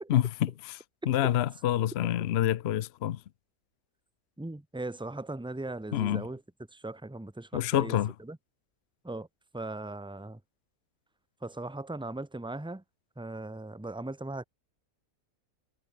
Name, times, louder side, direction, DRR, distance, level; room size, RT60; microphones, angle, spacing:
voice 1, 0.1-3.2 5.9-6.3 7.5-8.1, left 12 dB, 60° left, 0.7 m, -27 dB
voice 2, 1.0-1.3 4.4-6.4 6.7-8.4 9.0-9.3 9.5-10.4 11.4-12.8 13.2-14.4, right 2 dB, 5° right, 0.6 m, -38 dB
omnidirectional pair, 1.6 m